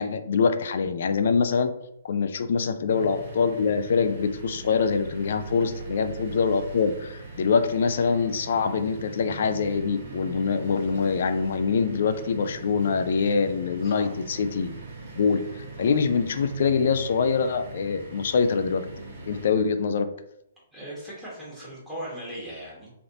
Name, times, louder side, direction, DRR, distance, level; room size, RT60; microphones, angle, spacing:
voice 1, 0.0-1.7 2.0-14.8 15.1-18.9 19.3-20.1, left 5 dB, 60° left, 9 dB, 0.3 m, -24 dB
sound 1, 2.9-19.5, right 3 dB, 55° right, 1.2 m, -41 dB
voice 2, 20.7-22.9, right 1 dB, 10° right, -9 dB, 1.3 m, -38 dB
3.3 x 2.5 x 2.6 m, 0.79 s
figure-of-eight pair, 130°, 0 cm